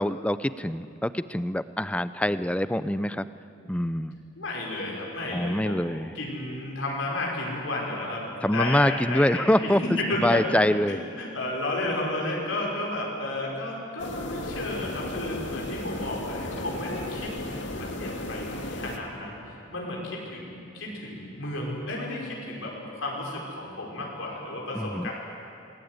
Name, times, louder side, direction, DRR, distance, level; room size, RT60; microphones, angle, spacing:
voice 1, 0.0-3.3 3.7-4.2 5.3-6.1 8.4-9.8 10.2-11.0 24.7-25.1, left 1 dB, 5° left, 14 dB, 0.5 m, -25 dB
voice 2, 4.4-5.9 6.1-8.2 8.5-10.6 10.8-25.1, left 2 dB, 85° left, -3 dB, 5.5 m, -32 dB
sound 1, 14.0-19.0, left 1 dB, 65° left, 2.2 m, -35 dB
27.0 x 20.0 x 9.5 m, 2.7 s
head